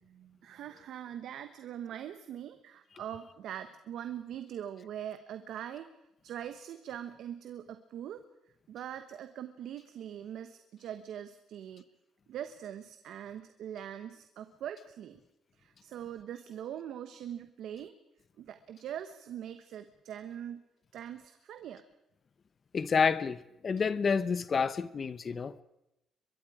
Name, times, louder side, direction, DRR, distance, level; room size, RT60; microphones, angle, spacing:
voice 1, 0.0-5.9 6.2-8.2 8.7-11.8 12.3-15.2 15.5-17.9 18.4-20.6 20.9-21.8, right 10 dB, 75° right, 1.1 m, -42 dB
voice 2, 22.7-25.5, left 5 dB, 40° left, 0.8 m, -29 dB
23.5 x 22.5 x 4.9 m
cardioid pair, 105°, 0 cm